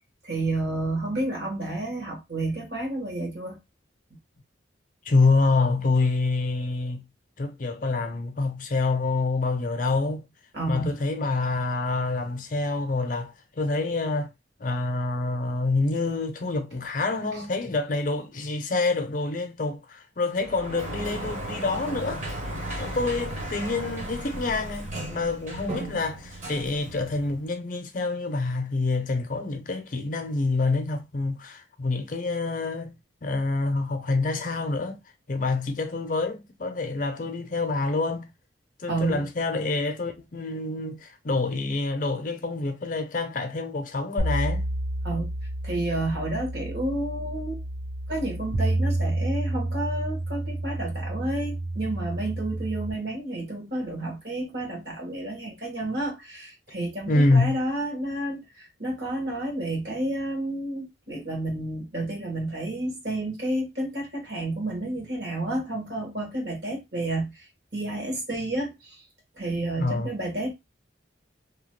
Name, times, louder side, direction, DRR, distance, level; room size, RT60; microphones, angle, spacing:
voice 1, 0.2-3.6 10.5-10.9 38.9-39.3 45.0-45.3 45.6-47.6 48.1-67.5 67.7-69.0 69.4-70.5, right 1 dB, 60° right, 1.4 m, -30 dB
voice 2, 5.0-7.0 7.4-10.3 10.7-14.3 14.6-22.2 22.8-33.0 33.2-35.0 35.3-38.3 38.8-44.7 57.1-57.6 69.8-70.1, left 3 dB, 45° left, 0.5 m, -27 dB
Sliding door, 20.4-27.5, right 1 dB, 40° right, 1.0 m, -35 dB
sound 1, 44.2-52.9, right 1 dB, 85° right, 1.0 m, -30 dB
2.9 x 2.2 x 3.1 m
head